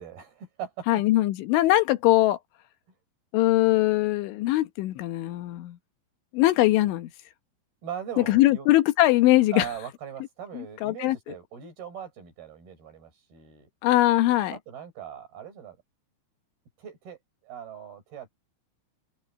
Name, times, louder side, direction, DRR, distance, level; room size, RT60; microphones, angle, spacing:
voice 1, 0.0-1.0 7.8-8.7 9.5-13.7 14.5-15.8 16.8-18.3, right 8 dB, 55° right, 7.4 m, -40 dB
voice 2, 0.9-2.4 3.3-5.8 6.3-7.1 8.2-9.7 10.6-11.2 13.8-14.6, left 16 dB, 80° left, 3.5 m, -21 dB
omnidirectional pair, 5.4 m